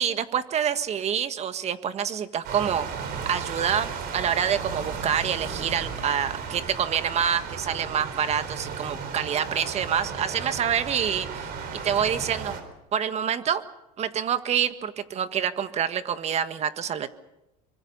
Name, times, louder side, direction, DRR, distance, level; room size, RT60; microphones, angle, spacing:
voice 1, 0.0-11.5 11.8-12.5 12.9-13.6 14.0-17.1, right 8 dB, 35° right, 10 dB, 1.6 m, -27 dB
sound 1, 2.4-12.6, right 6 dB, 55° right, 4.3 m, -35 dB
24.5 x 24.5 x 5.6 m, 0.93 s
supercardioid pair, 105°, 19 cm